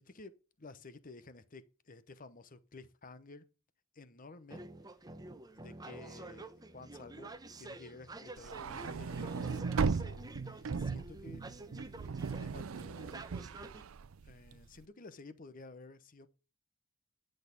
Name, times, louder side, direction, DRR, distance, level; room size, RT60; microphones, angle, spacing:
voice 1, 0.0-3.4 3.9-4.6 5.5-7.3 7.6-11.4 12.3-13.2 14.2-16.3, left 3 dB, 40° left, 0.9 m, -53 dB
sound 1, 4.5-13.8, right 2 dB, 20° right, 0.9 m, -49 dB
sound 2, 8.4-14.7, right 5 dB, 85° right, 0.5 m, -37 dB
10.5 x 6.5 x 5.1 m
head